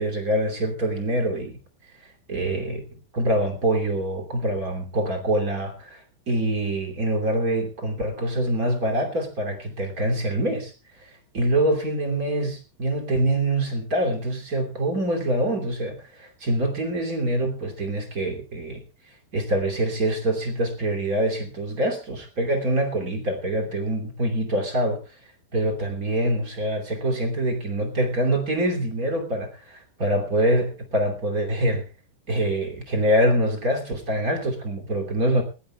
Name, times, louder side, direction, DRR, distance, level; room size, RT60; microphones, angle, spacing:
voice 1, 0.0-1.6 2.3-10.7 11.0-18.8 19.3-25.0 25.5-31.8 32.3-35.4, right 1 dB, 25° right, 3 dB, 2.6 m, -25 dB
20.5 x 18.0 x 2.3 m, 0.33 s
omnidirectional pair, 4.4 m